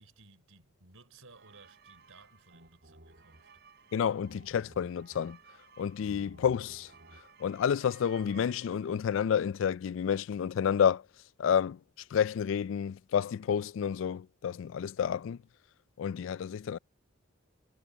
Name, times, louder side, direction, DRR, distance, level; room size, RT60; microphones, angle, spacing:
voice 1, 0.0-3.5, right 3 dB, 90° right, 5.4 m, -58 dB
sound 1, 1.3-9.2, right 3 dB, 50° right, 3.8 m, -56 dB
voice 2, 3.9-5.4 5.8-6.9 7.4-11.0 11.4-11.8 12.1-15.4 16.0-16.8, left 8 dB, 65° left, 0.3 m, -30 dB
head